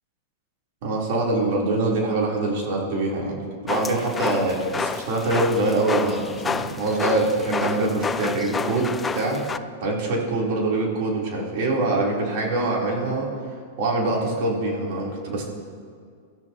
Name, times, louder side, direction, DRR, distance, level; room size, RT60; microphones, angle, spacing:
voice 1, 0.8-3.4 3.6-9.4 9.8-13.3 13.8-15.5, right 2 dB, 60° right, -3 dB, 3.8 m, -24 dB
sound 1, 3.7-9.6, left 5 dB, 15° left, 0.5 m, -29 dB
22.0 x 13.5 x 3.0 m, 2.1 s
hypercardioid pair, 120°, 0 cm